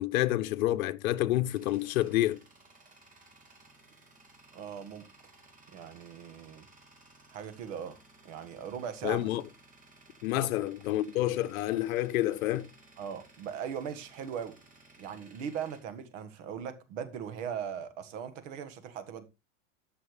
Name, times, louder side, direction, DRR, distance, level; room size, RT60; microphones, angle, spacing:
voice 1, 0.0-2.4 9.0-9.4 10.2-12.7, left 15 dB, 80° left, 0.8 m, -28 dB
Tools, 1.4-16.8, right 2 dB, 20° right, 2.2 m, -58 dB
voice 2, 4.5-5.1 5.7-6.7 7.3-9.3 10.4-10.5 13.0-14.6 15.0-19.2, right 8 dB, 65° right, 1.7 m, -39 dB
13.0 x 6.0 x 3.2 m
supercardioid pair, 135°, 41 cm